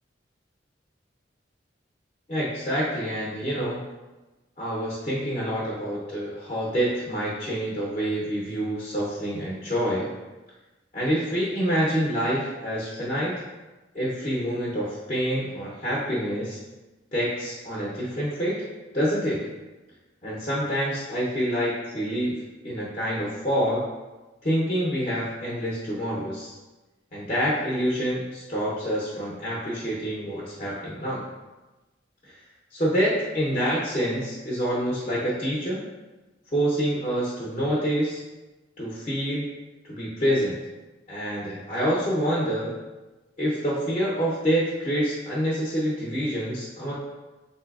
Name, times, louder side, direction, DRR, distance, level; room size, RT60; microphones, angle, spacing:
voice 1, 2.3-3.8 4.6-10.1 10.9-13.3 13.9-16.6 17.1-18.7 18.9-19.5 20.2-23.8 24.4-26.5 27.1-31.3 32.3-32.4 32.7-35.8 36.5-38.2 38.8-39.5 39.9-40.6 41.1-42.7 43.4-46.9, equal, 35° left, -6 dB, 0.6 m, -27 dB
3.9 x 2.7 x 2.3 m, 1.1 s
head